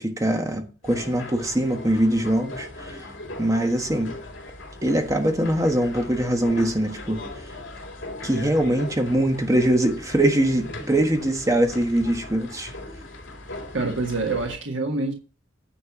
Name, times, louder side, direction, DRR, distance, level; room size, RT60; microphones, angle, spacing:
voice 1, 0.0-3.0 3.4-4.2 4.8-7.2 8.2-12.7, right 1 dB, 15° right, 1.3 m, -22 dB
sound 1, 0.8-14.6, left 2 dB, 70° left, 2.8 m, -39 dB
voice 2, 13.7-15.1, right 3 dB, 75° right, 1.5 m, -26 dB
9.8 x 4.5 x 7.2 m
head